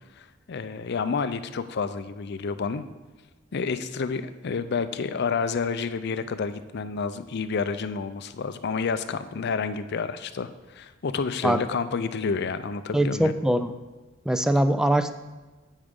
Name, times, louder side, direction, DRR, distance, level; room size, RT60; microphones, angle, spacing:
voice 1, 0.2-2.8 3.5-13.3, left 5 dB, 55° left, 12 dB, 0.5 m, -29 dB
voice 2, 12.9-13.7 14.3-15.1, right 1 dB, 5° right, 10 dB, 0.3 m, -22 dB
10.0 x 8.1 x 3.7 m, 1.2 s
head